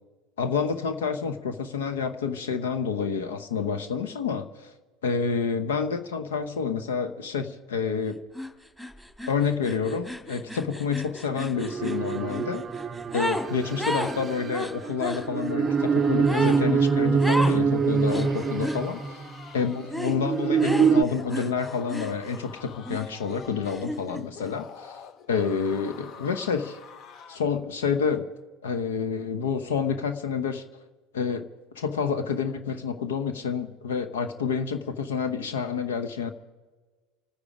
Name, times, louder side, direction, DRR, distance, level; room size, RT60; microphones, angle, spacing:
voice 1, 0.4-4.7 5.0-8.2 9.3-12.7 13.1-19.0 19.5-25.0 25.3-26.8 27.3-28.2 28.6-30.6 31.1-31.5 31.8-36.3, left 6 dB, 75° left, 10 dB, 0.9 m, -28 dB
sound 1, 8.3-8.5 8.8-13.5 13.8-15.2 16.2-16.6 17.2-17.6 18.1-18.8 19.9-20.2 20.6-22.5 22.8-24.2, left 1 dB, 10° left, 2.3 m, -33 dB
sound 2, 11.6-19.4 20.1-21.0, right 5 dB, 25° right, 0.5 m, -25 dB
sound 3, 15.5-27.6, left 6 dB, 45° left, 0.9 m, -47 dB
27.5 x 9.8 x 5.0 m, 1.3 s
figure-of-eight pair, 75°, 0 cm